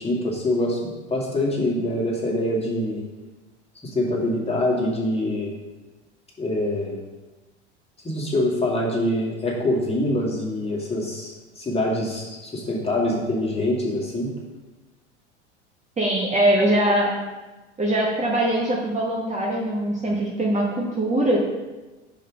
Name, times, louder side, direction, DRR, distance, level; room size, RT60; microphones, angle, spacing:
voice 1, 0.0-3.0 3.8-5.6 6.4-7.0 8.0-14.3, left 1 dB, 15° left, -3 dB, 2.1 m, -25 dB
voice 2, 16.0-17.1 17.8-21.4, right 1 dB, 20° right, -3 dB, 1.2 m, -22 dB
5.7 x 5.4 x 4.9 m, 1.2 s
hypercardioid pair, 80°, 35 cm